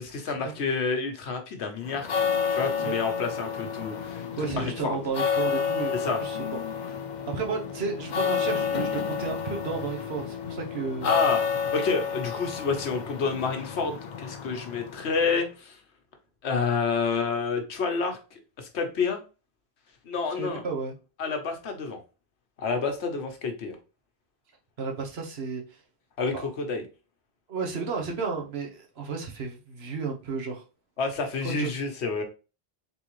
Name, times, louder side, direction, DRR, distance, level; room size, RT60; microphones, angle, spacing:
voice 1, 0.0-2.1 2.5-5.0 5.9-6.2 11.0-15.8 16.4-18.2 18.6-19.2 20.1-20.6 21.2-22.0 22.6-23.8 26.2-26.8 31.0-32.2, left 4 dB, 90° left, 1.2 m, -29 dB
sound 1, 1.8-15.4, left 7 dB, 50° left, 0.6 m, -30 dB
voice 2, 4.4-6.6 6.9-7.0 7.3-11.1 20.4-20.9 24.8-25.8 26.3-26.4 27.5-30.6 31.6-31.7, right 5 dB, 70° right, 1.2 m, -33 dB
3.9 x 3.6 x 3.0 m
omnidirectional pair, 1.1 m